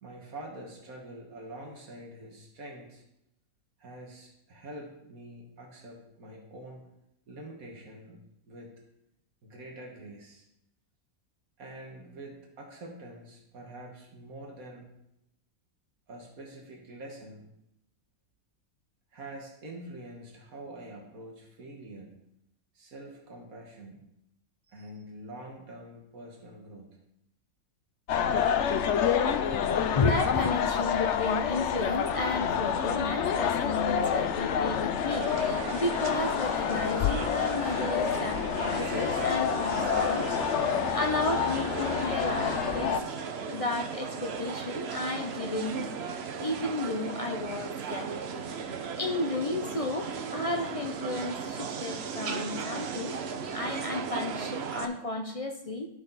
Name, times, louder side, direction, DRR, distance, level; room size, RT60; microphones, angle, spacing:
voice 1, 0.0-3.0 3.8-6.9 7.3-8.7 9.4-10.5 11.6-14.9 16.1-17.5 19.1-22.1 22.7-24.0 24.7-27.0, right 1 dB, 80° right, 0 dB, 1.9 m, -46 dB
sound 1, 28.1-43.0, left 8 dB, 65° left, 0.8 m, -28 dB
voice 2, 29.5-40.3 40.6-43.0 43.5-45.8 46.4-48.2 49.0-53.2 53.5-55.9, left 2 dB, 45° left, 4 dB, 0.4 m, -33 dB
sound 2, 35.1-54.9, right 6 dB, 55° right, 0.9 m, -36 dB
11.5 x 6.4 x 4.0 m, 0.82 s
omnidirectional pair, 1.5 m